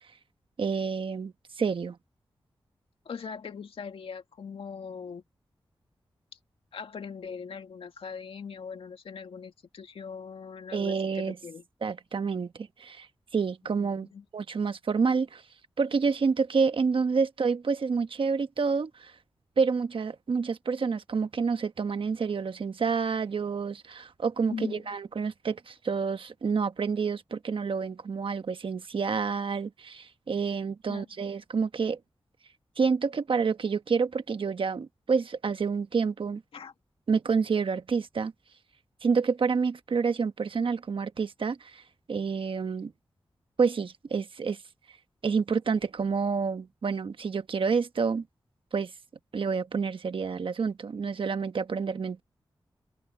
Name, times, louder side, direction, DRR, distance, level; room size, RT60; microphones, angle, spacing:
voice 1, 0.6-2.0 10.7-11.4 11.8-13.1 13.3-14.1 14.3-15.4 15.8-19.1 19.6-32.0 32.8-36.4 37.1-38.3 39.0-41.8 42.1-42.9 43.6-44.6 45.2-48.2 48.7-48.9 49.3-52.2, right 5 dB, 70° right, 1.2 m, -28 dB
voice 2, 3.1-5.2 6.7-11.6 14.0-14.2 24.5-24.9 30.9-31.0 36.5-36.7, left 6 dB, 85° left, 2.0 m, -40 dB
open air
cardioid pair, 55°, 9 cm